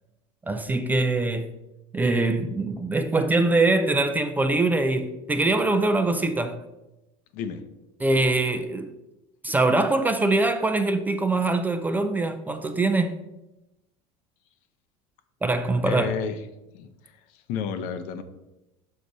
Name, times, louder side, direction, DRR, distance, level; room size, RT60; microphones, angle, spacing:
voice 1, 0.5-1.5 1.9-6.6 8.0-8.9 9.4-13.2 15.4-16.1, right 2 dB, 10° right, 0.3 m, -23 dB
voice 2, 7.3-7.6 15.8-16.4 16.7-18.2, left 7 dB, 60° left, 0.8 m, -32 dB
6.4 x 5.1 x 4.0 m
cardioid pair, 140°, 15 cm